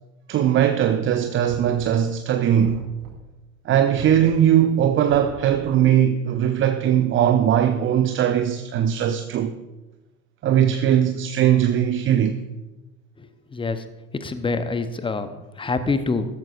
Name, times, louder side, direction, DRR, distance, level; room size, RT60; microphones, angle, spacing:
voice 1, 0.3-2.9 3.7-9.5 10.4-12.4, right 10 dB, 30° right, 0.6 m, -20 dB
Knock, 1.5-2.2 2.6-3.4 3.9-4.6 5.1-5.8, right 3 dB, 65° right, 4.1 m, -43 dB
voice 2, 13.2-13.8 14.1-16.3, left 3 dB, 10° left, 0.8 m, -26 dB
14.0 x 13.5 x 2.5 m
figure-of-eight pair, 70°, 45 cm